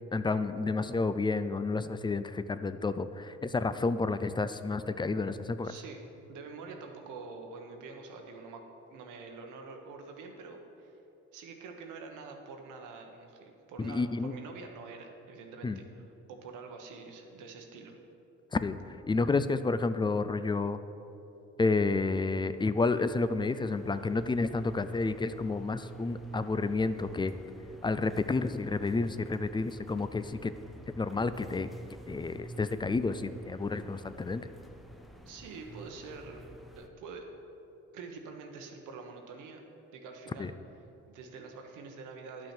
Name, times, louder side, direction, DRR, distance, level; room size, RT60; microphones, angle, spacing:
voice 1, 0.1-5.7 13.8-14.3 15.6-15.8 18.5-20.8 21.6-27.3 27.8-30.5 31.0-31.7 32.1-34.5 40.4-40.5, left 3 dB, 15° left, 12 dB, 0.3 m, -30 dB
voice 2, 5.6-6.0 6.3-8.6 8.9-11.0 11.3-18.0 35.3-36.4 36.8-37.2 37.9-39.6 39.9-40.5 41.1-42.5, right 4 dB, 90° right, 3 dB, 1.1 m, -46 dB
sound 1, 22.1-36.9, right 1 dB, ahead, 0.7 m, -50 dB
11.0 x 6.1 x 4.4 m, 3.0 s
cardioid pair, 90°, 30 cm